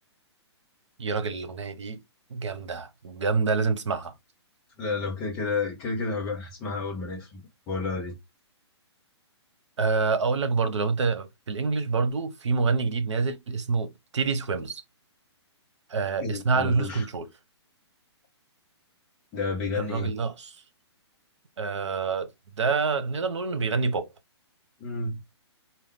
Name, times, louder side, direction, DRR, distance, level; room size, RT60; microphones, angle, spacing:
voice 1, 1.0-2.0 2.3-4.1 9.8-14.8 15.9-17.3 19.7-20.5 21.6-22.3 22.6-24.1, right 4 dB, 90° right, 1.0 m, -27 dB
voice 2, 4.8-7.4 7.7-8.2 16.2-17.1 19.3-20.1 24.8-25.2, left 4 dB, 5° left, 0.3 m, -31 dB
4.5 x 2.3 x 3.4 m
hypercardioid pair, 175°, 15 cm